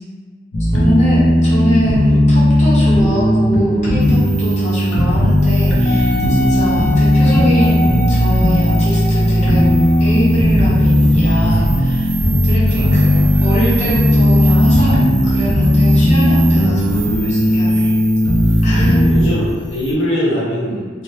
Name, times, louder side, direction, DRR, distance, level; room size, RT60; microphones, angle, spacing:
sound 1, 0.5-19.2, equal, 65° left, 0.6 m, -14 dB
voice 1, 0.7-12.1 12.4-17.9 18.6-19.0, equal, 35° left, -9 dB, 0.9 m, -23 dB
sound 2, 4.0-19.9, right 6 dB, 65° right, 0.4 m, -32 dB
Wind instrument woodwind instrument, 5.9-10.2 10.8-10.9, left 3 dB, 15° left, 0.3 m, -27 dB
voice 2, 12.8-13.2 18.7-21.0, equal, 90° left, -6 dB, 0.9 m, -22 dB
2.7 x 2.0 x 3.2 m, 1.5 s
head